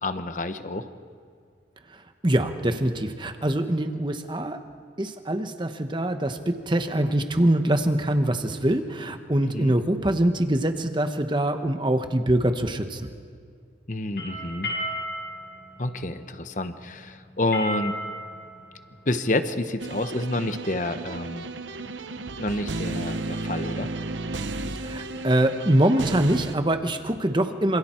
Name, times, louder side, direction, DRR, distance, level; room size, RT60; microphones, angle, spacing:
voice 1, 0.0-0.9 9.4-9.7 13.9-14.7 15.8-17.9 19.1-21.5 22.4-23.9, left 2 dB, 45° left, 9 dB, 1.0 m, -28 dB
voice 2, 1.9-4.6 5.0-13.1 24.7-27.8, right 1 dB, 25° right, 7 dB, 1.2 m, -24 dB
sound 1, 14.0-19.7, equal, 60° left, 7.7 m, -34 dB
sound 2, 19.8-26.6, right 2 dB, 85° right, 1.0 m, -33 dB
27.0 x 27.0 x 4.5 m, 2.2 s
head